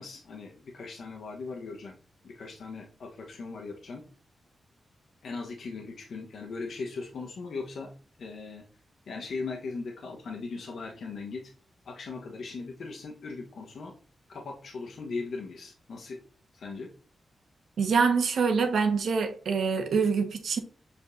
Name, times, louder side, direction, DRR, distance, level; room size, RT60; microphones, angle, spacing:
voice 1, 0.0-2.0 2.2-4.0 5.2-7.9 8.2-8.6 9.1-11.4 11.8-13.9 14.3-16.2 16.5-16.9, left 4 dB, 75° left, 1.1 m, -39 dB
voice 2, 17.8-20.6, right 5 dB, 80° right, 1.2 m, -25 dB
7.1 x 5.3 x 2.6 m
cardioid pair, 80°, 0 cm